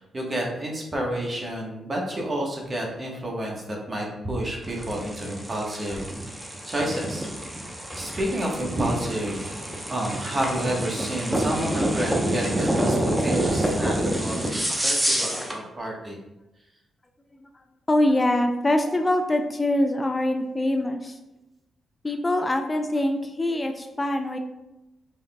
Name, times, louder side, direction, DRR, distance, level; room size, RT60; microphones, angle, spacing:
voice 1, 0.0-6.0 6.6-7.3 7.6-9.5 9.9-16.2 18.9-19.0, right 1 dB, 40° right, -1 dB, 1.3 m, -30 dB
sound 1, 4.6-15.6, right 1 dB, 15° right, 0.9 m, -27 dB
voice 2, 17.9-21.2 22.0-24.4, left 1 dB, 25° left, 5 dB, 0.4 m, -24 dB
5.2 x 3.6 x 2.3 m, 0.95 s
supercardioid pair, 55°, 0 cm